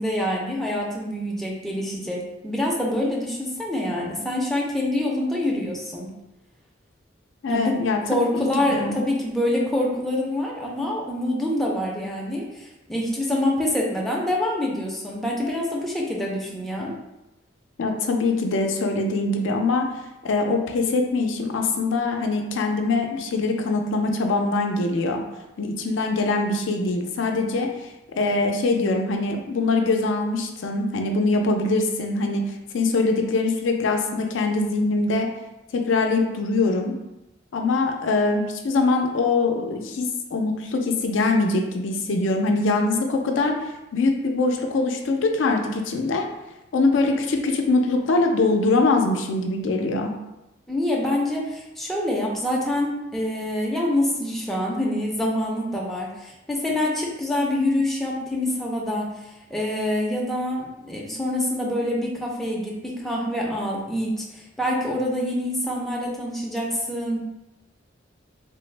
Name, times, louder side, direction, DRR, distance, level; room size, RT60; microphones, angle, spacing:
voice 1, 0.0-6.1 7.5-7.7 8.1-16.9 50.7-67.2, left 1 dB, ahead, -4 dB, 0.4 m, -26 dB
voice 2, 7.4-9.0 17.8-19.9 20.2-25.2 25.6-35.3 35.7-37.0 37.5-43.5 43.9-46.3 46.7-50.1, left 3 dB, 80° left, 3 dB, 0.4 m, -23 dB
3.2 x 2.0 x 3.2 m, 0.93 s
head